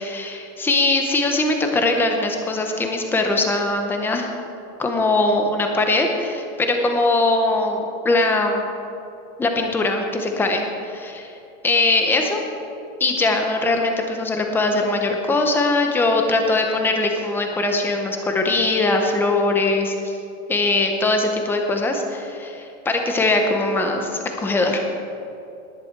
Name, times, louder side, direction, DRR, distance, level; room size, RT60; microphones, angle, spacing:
voice 1, 0.0-4.3 4.8-8.7 9.4-11.3 11.6-12.4 13.0-20.2 20.5-24.8, left 2 dB, 5° left, 3 dB, 0.7 m, -21 dB
19.0 x 10.5 x 4.6 m, 2.8 s
supercardioid pair, 170°, 41 cm